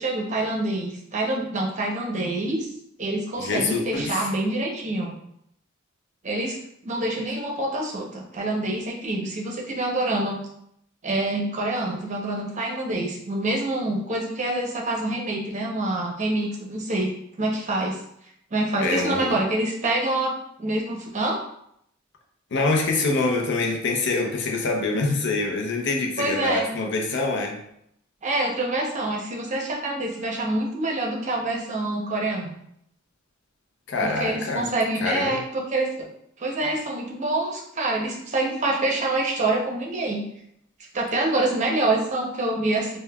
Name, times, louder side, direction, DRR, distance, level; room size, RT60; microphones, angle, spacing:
voice 1, 0.0-2.7 3.0-5.2 6.2-6.6 6.8-10.4 11.0-17.1 17.4-18.0 18.5-20.3 20.6-21.4 26.2-26.7 28.2-32.5 34.0-36.1 36.4-40.2 40.9-43.0, right 2 dB, 35° right, -1 dB, 0.7 m, -26 dB
voice 2, 3.4-4.3 18.8-19.4 22.5-27.6 33.9-34.7 35.0-35.4, left 3 dB, 60° left, 1 dB, 0.5 m, -25 dB
5.1 x 2.1 x 2.2 m, 0.74 s
head